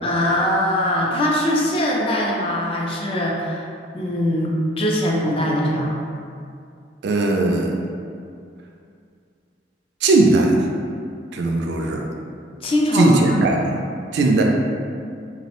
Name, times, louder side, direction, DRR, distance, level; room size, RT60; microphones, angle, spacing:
voice 1, 0.0-3.7 3.9-5.9 12.6-13.4, left 1 dB, 30° left, -2 dB, 0.3 m, -21 dB
voice 2, 7.0-7.7 10.0-10.5 11.3-12.0 12.9-13.8 14.1-14.4, right 2 dB, 65° right, 1 dB, 0.3 m, -18 dB
2.5 x 2.0 x 2.9 m, 2.3 s
head